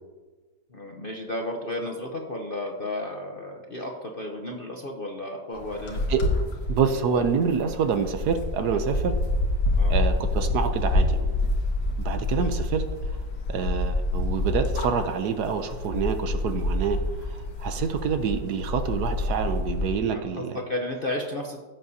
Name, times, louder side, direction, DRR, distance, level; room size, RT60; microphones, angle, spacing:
voice 1, 0.7-6.0 9.8-9.9 20.1-21.7, left 1 dB, 45° left, 1 dB, 0.7 m, -33 dB
sound 1, 5.5-19.9, left 2 dB, 85° left, 2.0 m, -27 dB
voice 2, 6.7-9.1 9.9-11.4 12.0-12.8 13.5-20.6, right 6 dB, 65° right, 7 dB, 1.2 m, -27 dB
16.0 x 7.6 x 2.7 m, 1.3 s
omnidirectional pair, 2.0 m